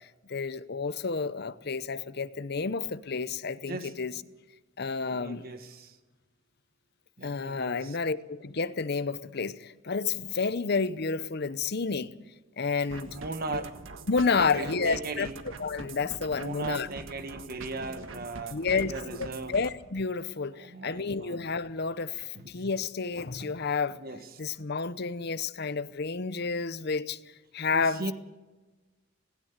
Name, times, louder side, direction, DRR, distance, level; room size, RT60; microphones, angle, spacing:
voice 1, 0.0-4.1 4.8-5.4 7.2-12.1 12.6-13.2 13.5-13.6 14.1-15.3 15.6-16.9 18.5-18.9 19.5-24.0 24.4-27.2 27.5-28.1, left 4 dB, 55° left, 0.8 m, -30 dB
voice 2, 5.0-6.0 7.2-8.0 13.1-13.8 14.3-15.3 16.3-19.6 20.6-21.4 22.2-22.5 23.4-23.5 24.0-24.3 27.7-28.1, right 3 dB, 50° right, 1.4 m, -38 dB
sound 1, 12.9-19.7, right 3 dB, 80° right, 1.5 m, -44 dB
16.5 x 16.5 x 9.6 m
head